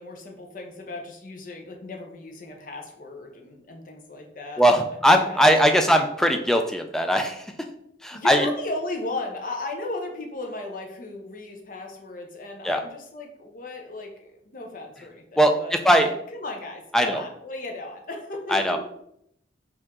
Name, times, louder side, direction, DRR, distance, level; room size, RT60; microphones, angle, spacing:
voice 1, 0.0-5.0 5.3-5.4 5.7-5.9 8.1-18.8, left 2 dB, 45° left, 2 dB, 0.7 m, -36 dB
voice 2, 4.6-7.5 8.0-8.5 12.6-12.8 15.4-16.1 16.9-17.2 18.5-18.8, equal, 5° left, 5 dB, 0.3 m, -20 dB
4.5 x 2.7 x 3.6 m, 0.75 s
head